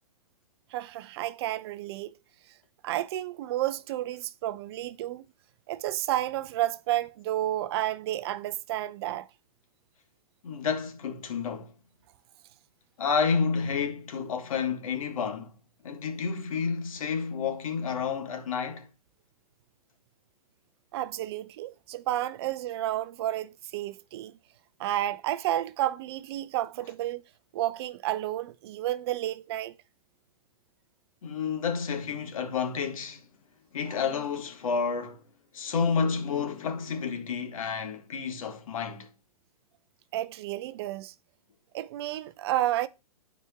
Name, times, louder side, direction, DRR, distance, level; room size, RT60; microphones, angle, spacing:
voice 1, 0.7-2.2 2.5-2.6 2.8-5.3 5.7-9.3 20.9-24.3 24.8-27.2 27.5-29.8 40.1-41.1 41.7-42.9, right 14 dB, 45° right, 0.5 m, -31 dB
voice 2, 10.4-11.7 13.0-15.5 15.8-18.9 31.2-33.2 33.7-35.2 35.5-39.1, left 6 dB, 65° left, 1.5 m, -30 dB
12.5 x 4.8 x 2.3 m
figure-of-eight pair, 115°, 19 cm